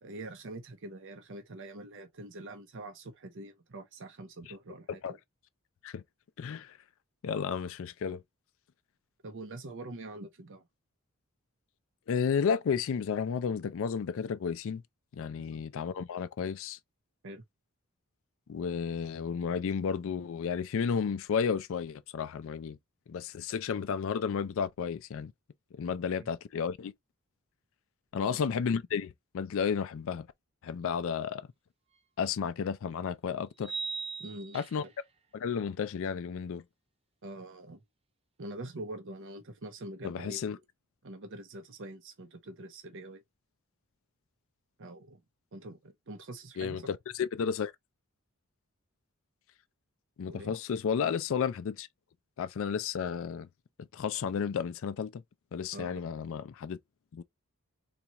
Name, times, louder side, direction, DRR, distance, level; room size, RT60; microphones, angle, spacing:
voice 1, 0.0-5.2 9.2-10.7 15.5-15.6 17.2-17.4 26.2-26.3 28.2-28.4 34.2-34.9 37.2-37.8 38.4-40.4 41.0-43.2 44.8-45.2 45.5-46.8 50.3-50.6 55.7-56.0, right 2 dB, 60° right, 0.7 m, -44 dB
voice 2, 6.4-6.8 7.2-8.2 12.1-14.8 15.1-16.8 18.5-22.8 23.1-25.3 25.7-26.9 28.1-30.3 30.6-31.5 32.2-33.7 34.5-34.8 35.3-36.6 40.0-40.6 46.6-47.7 50.2-51.9 52.4-53.5 53.9-55.2 55.5-56.8 57.1-57.2, left 6 dB, 60° left, 0.4 m, -32 dB
sound 1, 32.0-32.1 33.6-35.0, right 4 dB, 25° right, 0.7 m, -39 dB
4.1 x 2.3 x 2.8 m
head